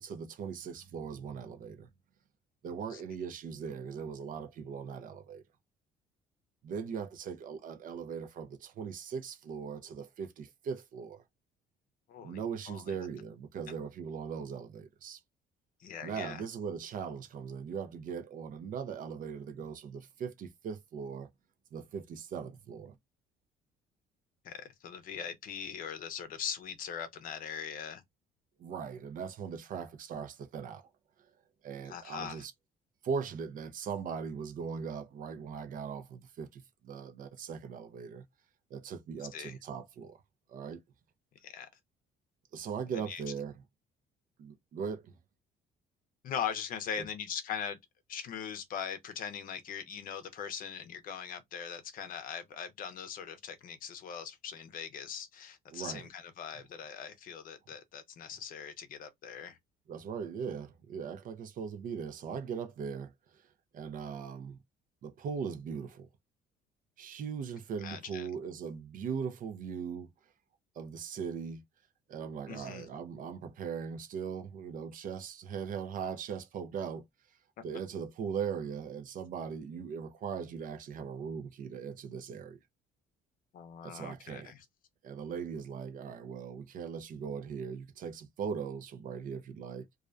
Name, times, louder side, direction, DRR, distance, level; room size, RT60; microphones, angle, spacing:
voice 1, 0.0-1.9 2.6-5.4 6.6-11.2 12.2-15.2 16.0-21.3 21.7-23.0 28.6-30.9 31.2-31.3 31.6-32.5 33.0-38.2 38.7-40.2 40.5-40.8 42.5-43.6 44.4-45.1 55.7-56.1 59.9-63.4 63.7-64.6 65.0-66.1 67.0-70.1 70.8-71.6 72.1-77.1 77.6-82.6 83.8-84.5 85.0-89.9, right 6 dB, 55° right, 0.5 m, -39 dB
voice 2, 12.1-12.4 12.7-12.9 15.8-16.4 24.4-28.0 31.9-32.4 39.3-39.5 41.4-41.7 42.9-43.2 46.2-47.8 48.1-59.6 67.8-68.3 72.5-72.9 83.5-84.6, left 8 dB, 55° left, 0.6 m, -41 dB
2.3 x 2.1 x 2.4 m
cardioid pair, 110°, 17 cm